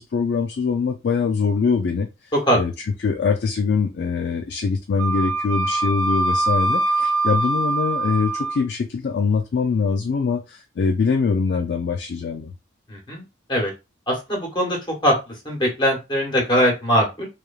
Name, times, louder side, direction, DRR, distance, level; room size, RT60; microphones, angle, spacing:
voice 1, 0.0-2.1 2.6-2.7 3.0-12.5, left 5 dB, 55° left, 0.3 m, -23 dB
Wind instrument woodwind instrument, 5.0-8.6, right 2 dB, 90° right, 0.4 m, -23 dB
voice 2, 12.9-13.7 14.1-17.3, equal, 25° left, 1.0 m, -21 dB
3.1 x 2.3 x 2.3 m
head